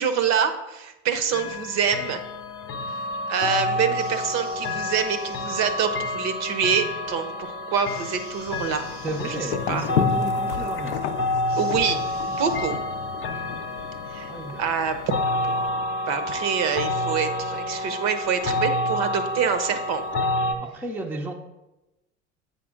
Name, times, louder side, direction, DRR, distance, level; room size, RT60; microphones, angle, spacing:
voice 1, 0.0-2.2 3.3-8.8 9.3-9.4 9.7-9.8 11.6-12.0 12.3-12.8 14.1-14.3 14.6-15.2 15.7-20.0, right 7 dB, 45° right, 10 dB, 0.7 m, -26 dB
sound 1, 1.3-20.5, left 2 dB, 35° left, 0.7 m, -29 dB
sound 2, 3.9-6.1 7.8-9.5 11.5-12.6, right 3 dB, 90° right, 1.0 m, -48 dB
sound 3, 8.5-15.7, left 9 dB, 70° left, 0.6 m, -33 dB
voice 2, 9.0-11.0 13.3-13.4 14.3-14.7 20.6-21.3, right 1 dB, 5° right, 3 dB, 0.6 m, -33 dB
8.0 x 5.2 x 3.7 m, 1.0 s
hypercardioid pair, 70°, 36 cm